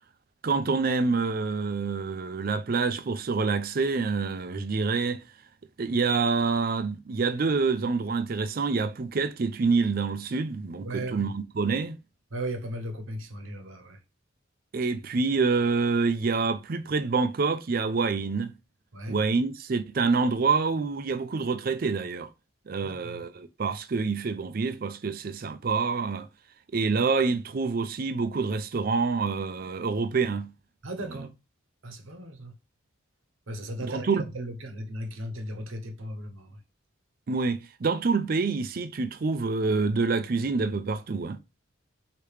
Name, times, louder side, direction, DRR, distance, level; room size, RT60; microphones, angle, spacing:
voice 1, 0.4-5.2 5.8-12.0 14.7-18.5 19.1-22.3 22.7-26.3 26.7-30.5 31.1-31.2 33.8-34.2 37.3-41.4, right 4 dB, 45° right, 0.4 m, -27 dB
voice 2, 10.8-11.3 12.3-14.0 18.9-19.2 22.8-23.2 30.8-31.3 31.8-32.5 33.5-36.6, right 1 dB, 75° right, 0.9 m, -36 dB
4.8 x 2.9 x 3.3 m
head